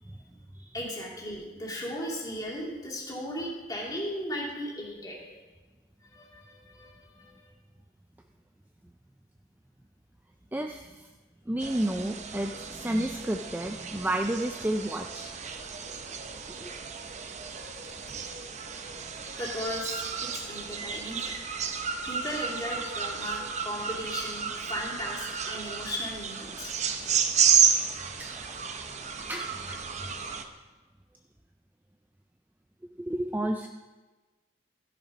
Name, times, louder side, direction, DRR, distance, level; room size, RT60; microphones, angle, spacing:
voice 1, 0.7-5.3 6.0-7.5 19.4-21.5 22.0-26.7 27.0-27.2, equal, 20° left, -4 dB, 2.8 m, -37 dB
voice 2, 10.5-11.1 11.5-15.3 16.6-16.7 28.1-28.6 29.3-30.1 33.0-33.7, right 1 dB, 10° right, 4 dB, 0.4 m, -31 dB
sound 1, 11.6-30.4, right 7 dB, 35° right, 0.7 m, -31 dB
13.0 x 7.4 x 5.4 m, 1.2 s
head